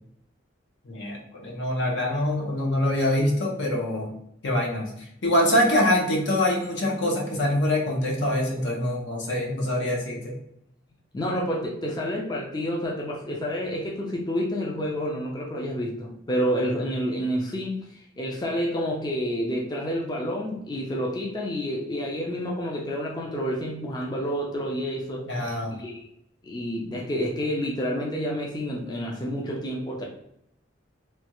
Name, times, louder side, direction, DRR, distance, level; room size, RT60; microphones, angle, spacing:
voice 1, 0.8-4.1 4.4-4.9 5.2-10.3 25.3-25.8, left 1 dB, 70° left, -1 dB, 0.8 m, -24 dB
voice 2, 11.1-25.3 25.8-26.0 26.4-30.0, equal, 20° left, -2 dB, 0.4 m, -29 dB
3.2 x 2.3 x 2.9 m, 0.76 s
head